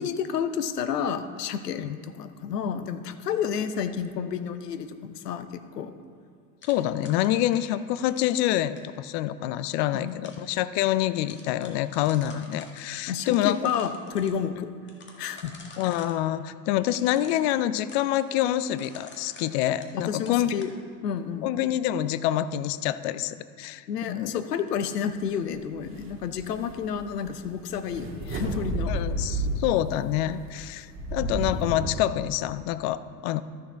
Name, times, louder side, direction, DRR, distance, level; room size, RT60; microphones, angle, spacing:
voice 1, 0.0-5.9 10.0-10.4 13.1-14.7 15.2-15.5 19.9-20.7 21.0-21.5 23.9-29.0, left 7 dB, 85° left, 10 dB, 0.8 m, -30 dB
sound 1, 6.6-9.0 9.7-10.5 10.8-10.9 11.2-12.8 13.2-14.3 14.9-16.2 16.9-20.0 20.3-20.7, left 3 dB, 25° left, 1.5 m, -49 dB
voice 2, 6.7-13.6 15.8-20.5 21.4-24.3 28.9-33.4, left 13 dB, 45° left, 14 dB, 0.4 m, -27 dB
sound 2, 25.5-25.6 25.8-29.9 30.4-31.9, right 1 dB, 25° right, 1.9 m, -31 dB
13.5 x 6.6 x 3.5 m, 2.1 s
hypercardioid pair, 95°, 46 cm